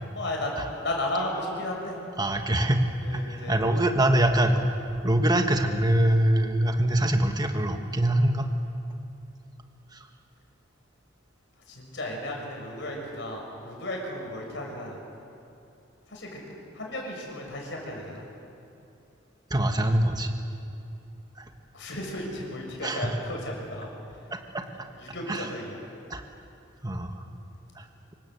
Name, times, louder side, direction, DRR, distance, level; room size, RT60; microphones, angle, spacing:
voice 1, 0.1-2.0 3.0-3.6 11.7-15.0 16.1-16.4 16.7-18.2 21.7-23.9 25.0-25.8, left 1 dB, 60° left, 0 dB, 6.8 m, -34 dB
voice 2, 2.2-2.8 3.1-4.7 5.0-8.5 9.9-10.1 19.5-20.3 21.4-21.5 22.8-23.2 24.5-24.6 25.3-25.5 26.1-26.2 26.8-27.2 27.7-27.8, right 1 dB, 20° right, 4 dB, 1.5 m, -24 dB
26.5 x 24.0 x 8.0 m, 2.8 s
head